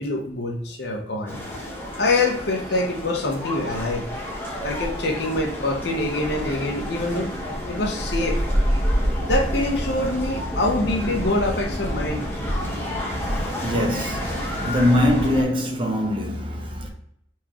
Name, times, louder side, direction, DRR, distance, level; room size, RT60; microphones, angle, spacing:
voice 1, 0.0-1.4 2.0-4.1 4.6-7.3 7.7-8.4 9.3-12.3, left 2 dB, 60° left, 0.9 m, -25 dB
voice 2, 1.0-1.3 2.0-2.2 3.7-3.8 4.5-4.6 12.7-16.9, left 1 dB, 25° right, 0.7 m, -24 dB
sound 1, 1.3-15.4, equal, 10° left, 1.0 m, -28 dB
4.4 x 3.6 x 3.0 m
head